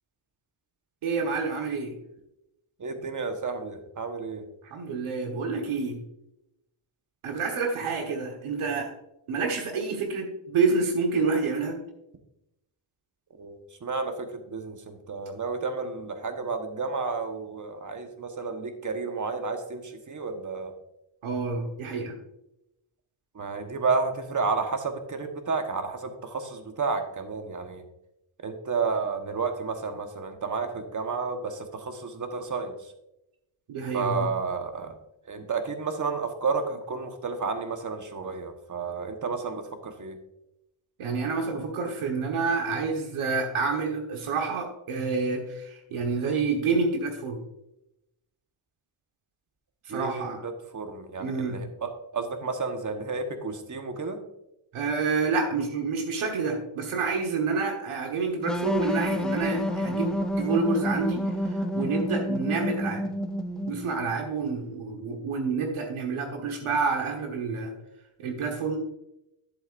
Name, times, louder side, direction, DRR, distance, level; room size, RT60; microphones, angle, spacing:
voice 1, 1.0-2.0 4.7-6.0 7.2-8.9 9.3-11.8 21.2-22.1 33.7-34.3 41.0-47.4 49.9-50.4 51.2-51.6 54.7-63.0 63.7-67.7 68.2-68.8, right 4 dB, 75° right, 3 dB, 1.5 m, -28 dB
voice 2, 2.8-4.4 13.4-20.7 23.3-27.8 28.4-32.9 33.9-34.9 35.3-40.2 49.9-54.2, right 4 dB, 35° right, 6 dB, 1.3 m, -31 dB
sound 1, 58.5-64.1, equal, ahead, 0.6 m, -29 dB
10.5 x 7.9 x 2.6 m, 0.87 s
cardioid pair, 95°, 50 cm